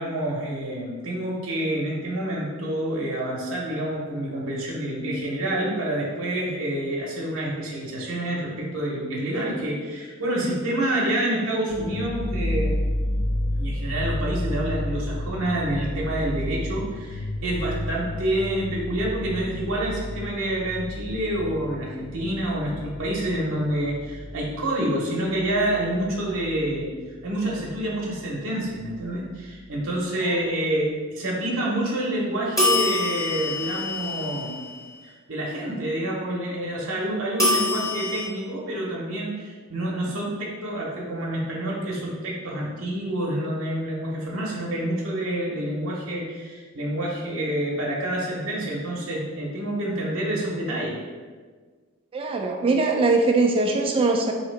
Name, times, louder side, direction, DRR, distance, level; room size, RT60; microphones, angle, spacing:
voice 1, 0.0-12.7 13.6-26.9 27.2-34.5 35.0-51.0, right 1 dB, 70° right, -4 dB, 0.8 m, -28 dB
sound 1, 11.7-26.8 27.0-28.2 28.5-28.6 29.0-29.6, left 1 dB, 45° left, 0.5 m, -31 dB
sound 2, 32.6-34.8 37.4-38.3, left 1 dB, 15° left, 0.9 m, -25 dB
voice 2, 52.1-54.3, right 3 dB, 25° right, 2 dB, 0.3 m, -21 dB
4.2 x 2.8 x 3.2 m, 1.5 s
head